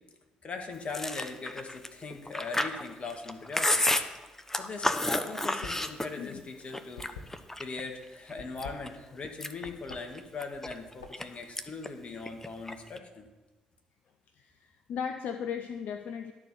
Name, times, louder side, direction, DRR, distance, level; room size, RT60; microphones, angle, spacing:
voice 1, 0.4-3.9 4.6-7.1 7.6-13.3, left 4 dB, 45° left, 4 dB, 1.8 m, -40 dB
Chewing mastication, 0.9-6.4 6.7-7.8 8.3-8.9 9.2-11.2 11.6-11.9 12.2-13.0, left 1 dB, 15° left, 0.8 m, -31 dB
sound 1, 5.6-5.9 6.2-7.8 8.3-9.3 9.6-10.0 10.5-11.4, left 4 dB, 90° left, 0.9 m, -46 dB
voice 2, 14.3-16.3, left 7 dB, 65° left, 8 dB, 0.5 m, -36 dB
12.0 x 4.5 x 6.8 m, 1.2 s
hypercardioid pair, 50°, 3 cm